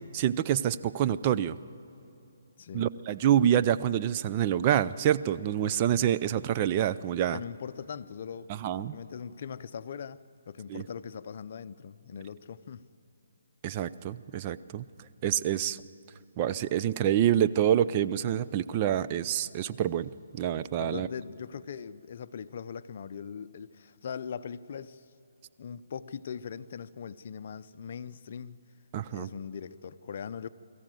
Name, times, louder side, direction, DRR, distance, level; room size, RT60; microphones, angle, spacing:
voice 1, 0.1-1.6 2.7-7.4 8.5-8.9 10.7-10.8 13.6-14.8 15.2-15.8 16.4-21.1 28.9-29.3, right 10 dB, 30° right, 0.5 m, -27 dB
voice 2, 2.6-2.9 7.3-8.5 8.8-12.9 20.8-25.0 25.6-28.6 29.1-30.5, left 7 dB, 50° left, 0.7 m, -40 dB
22.0 x 14.5 x 9.2 m
hypercardioid pair, 155°, 0 cm